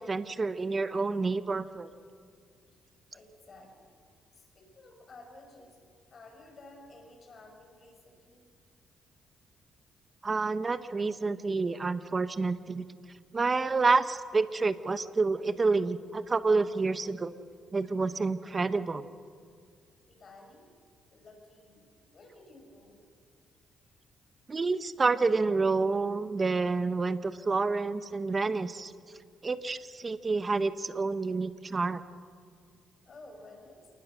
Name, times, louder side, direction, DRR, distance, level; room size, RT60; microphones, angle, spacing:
voice 1, 0.0-1.9 10.2-12.8 13.3-17.3 17.7-19.0 24.5-28.9 29.4-32.0, right 3 dB, 30° right, 12 dB, 1.1 m, -28 dB
voice 2, 3.1-4.0 4.3-5.8 6.1-8.5 20.1-20.7 21.1-23.0 33.0-33.9, left 2 dB, 45° left, 3 dB, 6.2 m, -53 dB
28.5 x 19.0 x 6.3 m, 2.1 s
cardioid pair, 90°, 0 cm